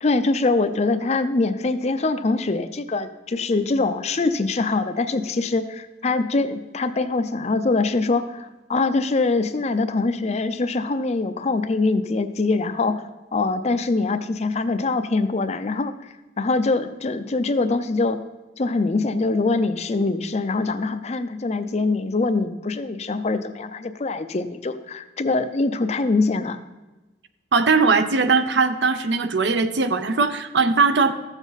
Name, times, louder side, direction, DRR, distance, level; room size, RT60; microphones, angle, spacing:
voice 1, 0.0-13.0 13.3-18.2 18.6-26.6, left 3 dB, 35° left, 10 dB, 0.5 m, -23 dB
voice 2, 27.5-31.1, right 4 dB, 70° right, 10 dB, 0.6 m, -20 dB
13.5 x 7.1 x 4.1 m, 1.1 s
head